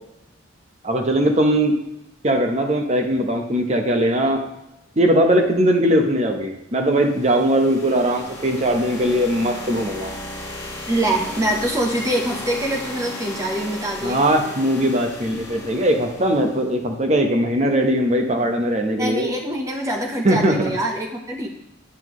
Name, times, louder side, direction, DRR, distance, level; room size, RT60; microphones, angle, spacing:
voice 1, 0.8-1.7 2.2-4.4 5.0-10.1 14.0-19.3 20.2-20.7, right 1 dB, 35° right, 3 dB, 1.0 m, -20 dB
sound 1, 6.9-16.7, left 1 dB, 15° left, 1.6 m, -35 dB
voice 2, 10.9-14.2 19.0-21.5, right 1 dB, 15° right, 1 dB, 1.0 m, -24 dB
9.9 x 5.7 x 3.1 m, 0.87 s
head